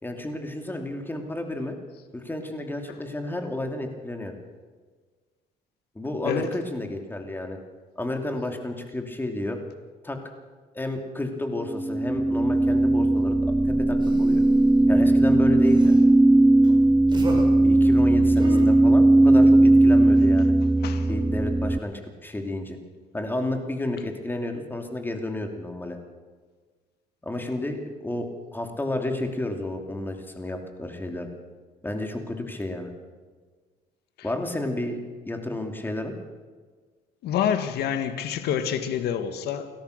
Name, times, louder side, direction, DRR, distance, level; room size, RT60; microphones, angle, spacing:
voice 1, 0.0-1.7 2.1-4.3 5.9-7.6 8.0-9.6 10.0-10.2 10.7-13.3 13.6-14.4 14.9-15.9 17.6-20.5 21.0-22.8 23.1-26.0 27.2-31.3 31.8-32.9 34.2-35.0 35.2-36.1, left 1 dB, 10° left, 2.8 m, -31 dB
sound 1, 11.7-21.8, right 2 dB, 5° right, 0.5 m, -18 dB
sound 2, 14.0-14.7 15.6-16.0 16.6-16.8 17.1-17.5 18.4-18.6, right 2 dB, 25° right, 5.1 m, -34 dB
voice 2, 37.2-39.7, left 9 dB, 75° left, 1.8 m, -27 dB
30.0 x 13.0 x 6.6 m
cardioid pair, 110°, 17 cm